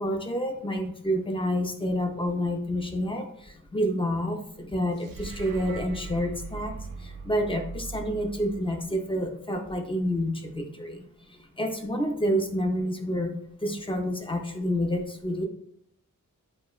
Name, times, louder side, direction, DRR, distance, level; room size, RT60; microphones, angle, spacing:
voice 1, 0.0-3.2 3.7-6.7 7.3-11.0 11.6-13.4 13.6-15.5, equal, 15° left, 4 dB, 0.3 m, -28 dB
sound 1, 4.9-9.3, right 4 dB, 75° right, 0.5 m, -40 dB
3.0 x 2.0 x 2.3 m, 0.68 s
wide cardioid pair, 65°, 36 cm